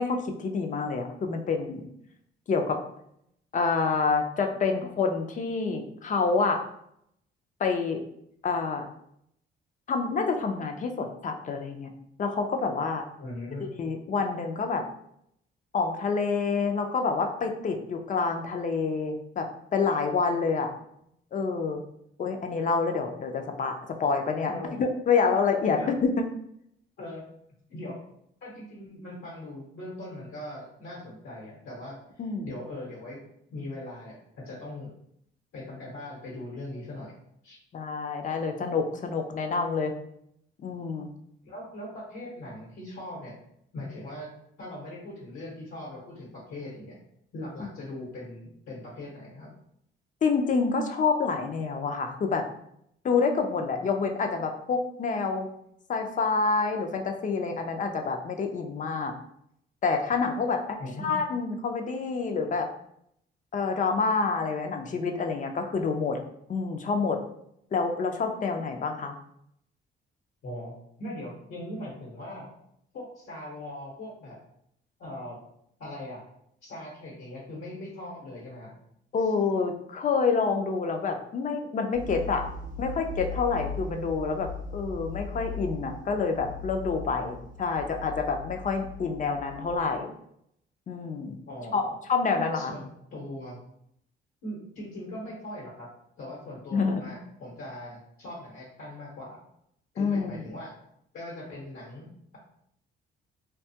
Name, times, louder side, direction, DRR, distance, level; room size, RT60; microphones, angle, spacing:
voice 1, 0.0-1.9 2.5-2.8 3.5-6.6 7.6-8.0 8.4-8.9 9.9-11.9 12.2-13.0 13.8-14.8 15.7-20.7 21.3-21.8 22.2-23.7 24.0-24.5 24.8-26.1 32.2-32.5 37.7-39.9 40.6-41.1 50.2-52.4 53.0-55.5 55.9-59.1 59.8-60.8 61.0-62.7 63.5-66.2 66.5-67.2 67.7-69.1 79.1-82.4 82.8-90.1 90.9-91.4 91.7-91.8 92.1-92.7 96.7-97.0 100.0-100.4, left 4 dB, 40° left, 4 dB, 0.4 m, -27 dB
voice 2, 13.2-13.7 24.5-24.8 25.8-25.9 27.0-27.3 27.7-28.0 28.4-32.0 32.4-33.2 33.5-34.9 35.5-37.1 37.4-37.6 41.4-43.4 43.7-44.3 44.6-47.0 47.3-49.5 60.8-61.2 70.4-72.5 72.9-74.4 75.0-75.4 75.8-76.2 76.6-78.7 91.5-92.0 92.5-93.6 94.4-95.9 96.2-99.4 99.9-100.7 101.1-102.1, left 1 dB, 80° left, -5 dB, 1.0 m, -40 dB
sound 1, 81.9-89.8, left 3 dB, 45° right, 0.4 m, -39 dB
2.6 x 2.3 x 2.7 m, 0.73 s
cardioid pair, 90°, 20 cm